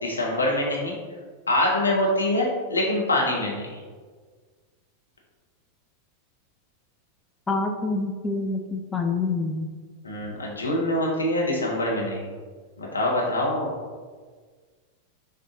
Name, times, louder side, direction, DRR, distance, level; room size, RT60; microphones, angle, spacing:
voice 1, 0.0-0.9 1.5-3.8 10.0-12.3 12.8-13.7, left 1 dB, 80° left, -2 dB, 0.9 m, -24 dB
voice 2, 7.5-9.7, left 3 dB, 15° left, 3 dB, 0.3 m, -27 dB
6.0 x 2.5 x 2.7 m, 1.5 s
figure-of-eight pair, 90°, 0 cm